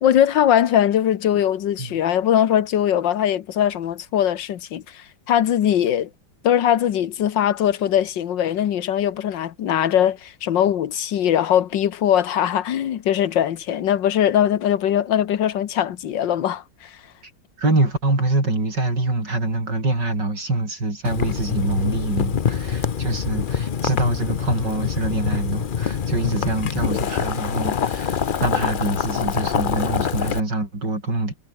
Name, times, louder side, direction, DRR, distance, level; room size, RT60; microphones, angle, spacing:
voice 1, 0.0-6.1 6.4-17.0, left 10 dB, 75° left, 1.8 m, -21 dB
voice 2, 17.6-31.3, right 2 dB, 70° right, 7.4 m, -25 dB
Boiling, 21.0-30.4, left 7 dB, 50° left, 0.6 m, -25 dB
omnidirectional pair, 2.0 m